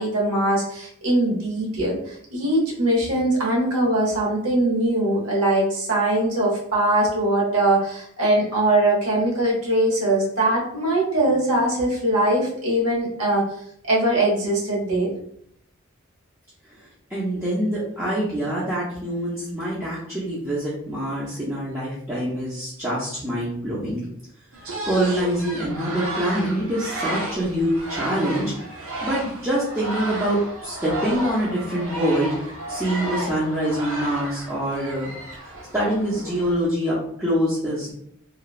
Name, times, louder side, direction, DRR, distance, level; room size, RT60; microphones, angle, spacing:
voice 1, 0.0-13.5 13.8-15.1, right 1 dB, 90° right, -3 dB, 1.0 m, -21 dB
voice 2, 16.7-24.0 24.8-35.1 35.4-37.9, right 1 dB, 10° right, -9 dB, 0.4 m, -25 dB
sound 1, 24.5-36.6, right 1 dB, 70° right, 0.6 m, -33 dB
2.9 x 2.1 x 2.4 m, 0.68 s
head